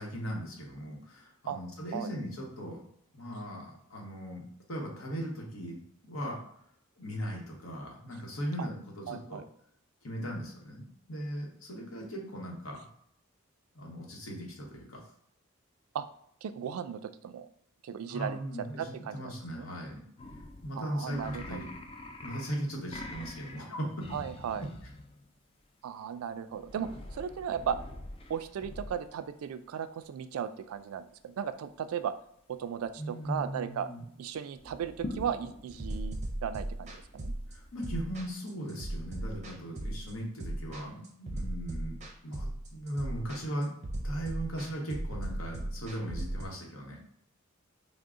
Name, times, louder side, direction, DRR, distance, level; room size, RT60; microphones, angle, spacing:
voice 1, 0.0-2.8 3.1-4.4 4.7-5.8 6.0-6.4 7.0-9.4 10.0-12.8 13.7-15.0 18.1-20.0 20.6-21.6 22.2-24.1 33.0-34.1 37.5-42.0 42.2-43.7 44.0-47.0, equal, 75° left, -1 dB, 1.0 m, -38 dB
voice 2, 9.1-9.4 15.9-16.1 16.4-17.5 17.8-18.4 18.8-19.7 20.8-21.6 24.1-24.7 25.8-27.8 28.3-32.1 32.5-33.9 34.2-37.3, right 8 dB, 90° right, 11 dB, 0.3 m, -36 dB
sound 1, 20.2-25.3 26.5-29.2 32.7-32.9 33.2-33.6 34.5-38.2, left 2 dB, 25° left, 0.3 m, -45 dB
sound 2, 35.8-46.5, right 1 dB, 35° right, 0.5 m, -37 dB
3.7 x 2.0 x 3.6 m, 0.70 s
head